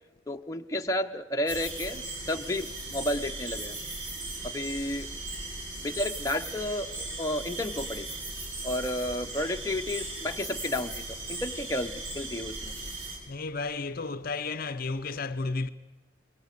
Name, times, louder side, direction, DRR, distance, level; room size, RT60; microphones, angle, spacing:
voice 1, 0.3-2.0 2.3-3.8 4.4-5.1 5.8-8.1 8.6-12.7, left 1 dB, 15° left, 0.8 m, -32 dB
sound 1, 1.5-13.2, right 2 dB, 80° right, 7.0 m, -38 dB
voice 2, 13.3-15.7, left 3 dB, 45° left, 0.7 m, -32 dB
26.5 x 22.5 x 6.7 m
head